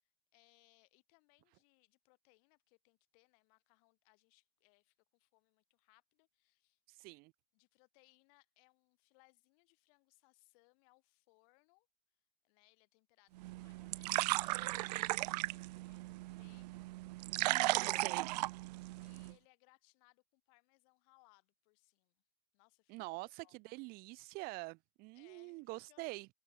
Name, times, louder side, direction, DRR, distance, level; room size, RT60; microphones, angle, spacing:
voice 1, 0.0-6.8 7.5-11.9 12.4-18.3 19.0-22.2 22.5-23.6 25.1-26.2, left 39 dB, 55° left, 7.0 m, -71 dB
voice 2, 6.9-7.3 17.3-18.3 22.9-26.3, right 25 dB, 45° right, 0.8 m, -46 dB
sound 1, 13.4-19.3, right 19 dB, 75° right, 0.4 m, -36 dB
open air
supercardioid pair, 135°, 21 cm